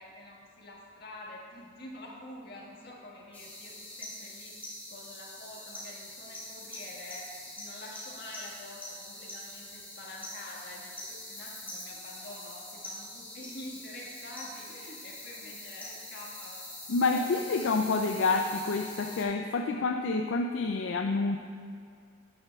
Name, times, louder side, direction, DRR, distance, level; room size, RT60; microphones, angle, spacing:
voice 1, 0.0-16.6 17.1-17.4, left 1 dB, 50° left, -3 dB, 1.6 m, -47 dB
sound 1, 3.3-19.2, left 1 dB, 10° left, 1.6 m, -44 dB
voice 2, 16.9-21.4, left 3 dB, 70° left, 4 dB, 0.4 m, -28 dB
12.5 x 9.8 x 2.3 m, 2.3 s
head